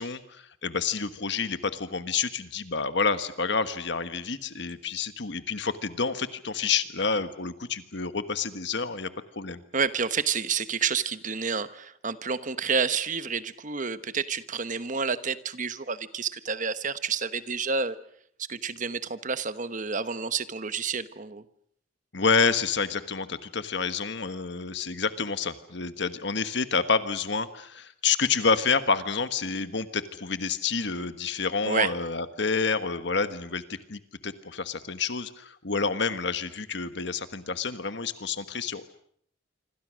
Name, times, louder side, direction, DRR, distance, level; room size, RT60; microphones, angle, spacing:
voice 1, 0.0-9.1 9.3-9.6 22.1-33.6 33.9-38.9, left 5 dB, 65° left, 11 dB, 1.4 m, -28 dB
voice 2, 9.7-17.9 18.5-21.4 31.6-31.9, right 5 dB, 40° right, 13 dB, 1.1 m, -29 dB
26.5 x 25.5 x 6.4 m, 0.65 s
head